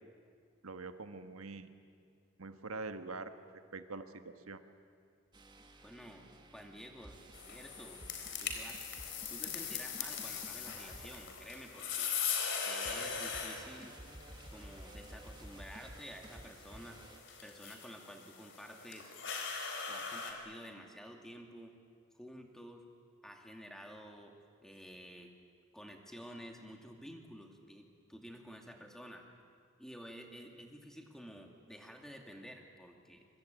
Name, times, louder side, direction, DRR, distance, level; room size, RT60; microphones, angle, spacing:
voice 1, 0.6-1.7 2.4-3.3 3.7-4.6, right 3 dB, 85° right, 8 dB, 1.4 m, -44 dB
sound 1, 5.3-12.0 12.8-17.2, right 1 dB, 20° right, 1.5 m, -54 dB
voice 2, 5.8-6.3 6.5-8.0 8.4-8.8 9.3-12.1 12.6-14.0 14.5-17.0 17.4-19.1 19.9-21.7 22.1-22.8 23.2-24.3 24.6-25.3 25.7-29.3 29.8-33.3, equal, ahead, 2 dB, 2.3 m, -51 dB
sound 2, 7.3-20.3, left 6 dB, 55° left, 3.8 m, -41 dB
24.0 x 24.0 x 9.1 m, 2.2 s
head